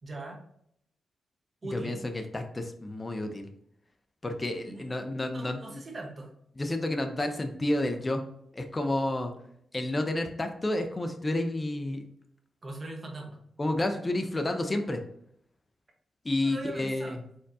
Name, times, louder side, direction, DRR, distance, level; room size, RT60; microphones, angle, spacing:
voice 1, 0.0-0.4 1.6-2.0 4.7-6.3 12.6-13.4 16.4-17.2, right 1 dB, 40° right, 1 dB, 1.1 m, -41 dB
voice 2, 1.7-3.5 4.2-5.8 6.6-8.3 8.5-9.3 9.7-12.0 13.6-15.0 16.2-17.1, left 1 dB, 25° left, 6 dB, 0.5 m, -30 dB
4.3 x 3.7 x 2.7 m, 0.70 s
cardioid pair, 90°, 0 cm